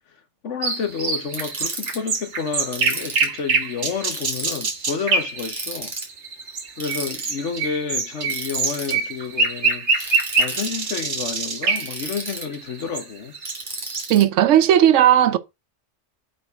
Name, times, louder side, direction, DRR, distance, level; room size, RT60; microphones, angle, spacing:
voice 1, 0.4-5.9 6.8-10.1 10.4-13.3, left 6 dB, 75° left, 1.5 m, -30 dB
sound 1, 0.6-14.1, right 4 dB, 75° right, 1.5 m, -25 dB
Ratchet pawl, 1.3-2.0 2.7-3.4 4.1-4.7 5.4-6.1 6.8-7.3 8.3-8.9 10.0-10.7 11.7-12.6 13.5-14.2, right 2 dB, 40° right, 3.0 m, -32 dB
voice 2, 14.1-15.4, right 11 dB, 90° right, 1.0 m, -15 dB
8.3 x 5.0 x 3.7 m
omnidirectional pair, 1.2 m